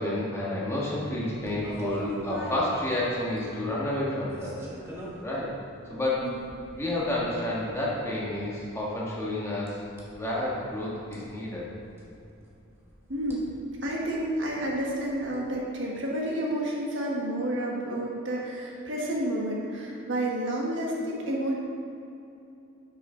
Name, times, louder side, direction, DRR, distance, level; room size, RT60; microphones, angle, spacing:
voice 1, 0.0-4.6 5.2-5.5 5.9-6.3 6.7-9.8 10.1-11.7, left 1 dB, 15° left, -6 dB, 1.5 m, -30 dB
sound 1, 1.2-15.4, right 1 dB, 15° right, 1.2 m, -46 dB
voice 2, 13.1-13.6 13.8-21.5, right 1 dB, 65° right, -3 dB, 1.5 m, -30 dB
10.5 x 6.1 x 3.9 m, 2.7 s
head